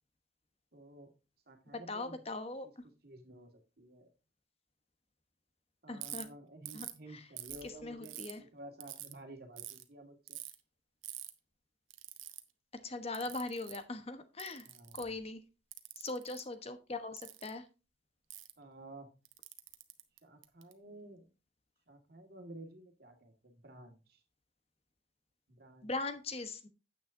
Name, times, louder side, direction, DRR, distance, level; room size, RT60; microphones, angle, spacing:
voice 1, 0.7-1.1 1.5-2.2 3.0-3.5 3.8-4.1 5.8-10.4 14.6-15.1 18.6-19.1 20.2-21.2 21.9-24.2 25.5-25.9, right 1 dB, 50° right, 4 dB, 2.1 m, -52 dB
voice 2, 1.9-2.7 5.9-6.3 6.7-6.9 7.1-7.2 7.8-8.4 12.8-14.7 14.9-15.4 16.0-17.6 25.8-26.7, left 2 dB, 30° left, 9 dB, 1.1 m, -40 dB
Ratchet pawl, 6.0-6.2 6.7-7.0 7.4-8.3 8.8-9.1 9.6-9.8 10.3-10.5 11.0-11.3 11.9-12.4 13.1-13.8 14.4-15.2 15.7-16.4 17.2-17.5 18.3-18.5 19.2-20.7, right 15 dB, 90° right, 1.0 m, -45 dB
9.5 x 8.6 x 2.7 m, 0.30 s
head